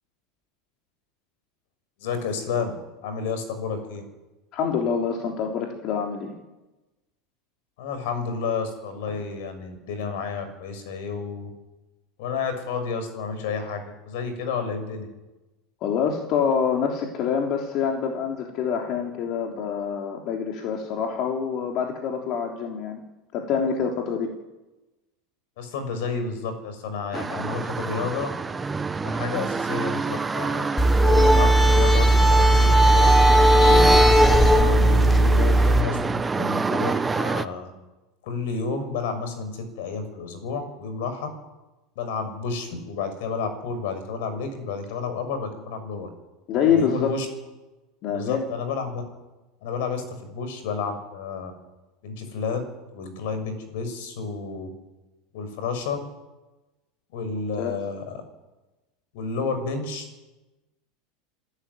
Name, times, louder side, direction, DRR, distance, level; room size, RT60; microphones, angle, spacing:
voice 1, 2.0-2.7 3.0-4.0 7.8-11.5 12.2-15.1 25.6-28.3 29.0-33.9 34.5-37.7 38.2-41.3 41.9-46.1 46.6-47.3 48.1-49.0 49.6-51.5 52.0-52.6 52.9-54.7 55.3-56.0 57.1-58.2 59.1-60.0, left 5 dB, 70° left, 8 dB, 6.5 m, -31 dB
voice 2, 4.5-6.4 15.8-23.0 23.3-24.3 35.4-35.7 46.5-47.1 48.0-48.4 57.6-57.7, left 7 dB, 50° left, 1 dB, 3.6 m, -26 dB
sound 1, 27.1-37.5, right 4 dB, 15° right, 1.1 m, -28 dB
sound 2, 30.8-35.8, right 1 dB, 15° left, 3.8 m, -16 dB
27.0 x 13.0 x 9.8 m, 1.1 s
supercardioid pair, 105°, 0 cm